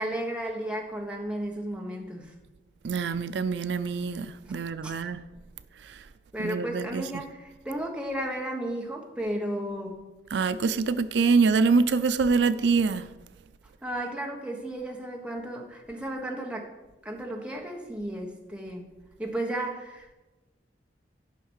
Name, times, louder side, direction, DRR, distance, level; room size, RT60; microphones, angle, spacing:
voice 1, 0.0-2.3 4.8-4.9 6.3-10.1 13.8-16.7 17.0-18.9 19.2-20.1, right 1 dB, 5° right, 1.3 m, -34 dB
voice 2, 2.8-5.2 5.8-6.0 6.4-7.2 10.3-13.1, right 4 dB, 85° right, 0.4 m, -25 dB
10.5 x 5.7 x 6.4 m
head